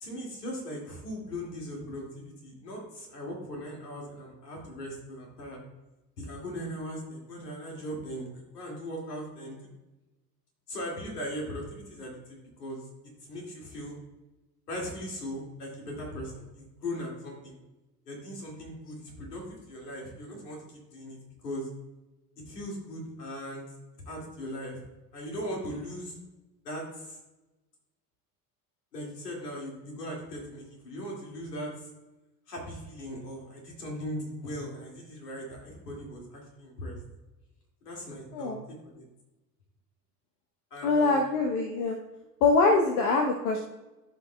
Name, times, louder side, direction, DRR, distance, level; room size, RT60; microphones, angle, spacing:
voice 1, 0.0-5.6 6.2-9.6 10.7-12.8 13.3-14.0 14.7-17.6 18.1-21.7 22.5-23.7 24.1-24.8 25.1-26.1 26.6-27.2 28.9-31.9 32.5-37.0 37.8-39.1 40.7-41.3, equal, 75° left, -1 dB, 2.4 m, -39 dB
voice 2, 40.8-42.0 42.4-43.6, left 3 dB, 60° left, 3 dB, 1.0 m, -24 dB
14.5 x 5.3 x 2.3 m, 1.1 s
figure-of-eight pair, 65°, 48 cm